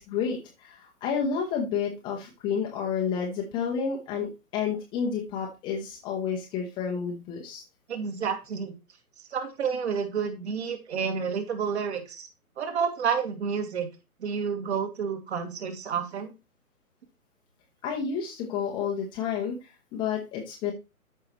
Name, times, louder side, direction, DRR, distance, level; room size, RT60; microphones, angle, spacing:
voice 1, 0.0-7.6 17.8-20.7, left 6 dB, 10° left, -1 dB, 0.8 m, -30 dB
voice 2, 7.9-8.7 9.3-12.3 12.6-13.9 14.2-16.3, right 6 dB, 45° right, 5 dB, 2.4 m, -30 dB
13.5 x 5.6 x 3.0 m, 0.27 s
figure-of-eight pair, 135°, 46 cm